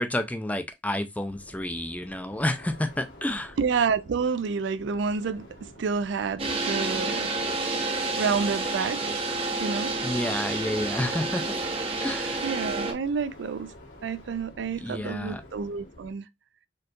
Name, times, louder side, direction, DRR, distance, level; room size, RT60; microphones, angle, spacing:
voice 1, 0.0-3.6 10.0-11.6 12.0-12.4 14.8-15.4, left 1 dB, 10° left, 0.4 m, -30 dB
sound 1, 1.3-16.1, left 1 dB, 90° left, 1.8 m, -50 dB
voice 2, 3.6-7.3 8.2-9.1 9.6-10.0 12.4-13.7 14.0-16.3, right 5 dB, 80° right, 0.4 m, -29 dB
sound 2, 6.4-12.9, right 3 dB, 35° right, 0.7 m, -29 dB
4.4 x 2.8 x 2.4 m
head